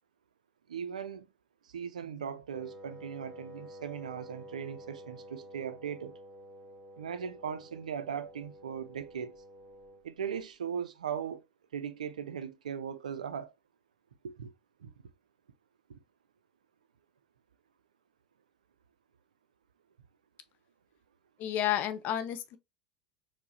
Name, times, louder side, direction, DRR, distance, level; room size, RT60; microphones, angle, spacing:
voice 1, 0.7-1.3 1.6-6.2 7.0-9.4 10.0-11.4 11.7-13.5 14.2-14.5 14.8-14.9, right 7 dB, 75° right, 0.3 m, -38 dB
Wind instrument woodwind instrument, 2.5-10.1, equal, 15° right, 2.0 m, -50 dB
voice 2, 21.4-22.6, left 11 dB, 45° left, 0.4 m, -31 dB
4.4 x 2.1 x 2.7 m
figure-of-eight pair, 70°, 4 cm